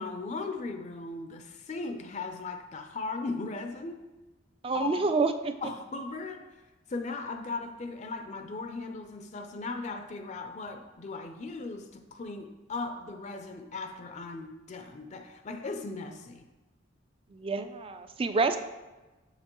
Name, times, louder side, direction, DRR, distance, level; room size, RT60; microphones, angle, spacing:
voice 1, 0.0-4.1 4.7-5.1 5.6-6.5 6.9-16.5, left 3 dB, 40° left, 0.4 m, -38 dB
voice 2, 4.6-5.5 17.3-18.6, right 3 dB, 30° right, 0.4 m, -28 dB
6.6 x 6.6 x 3.0 m
head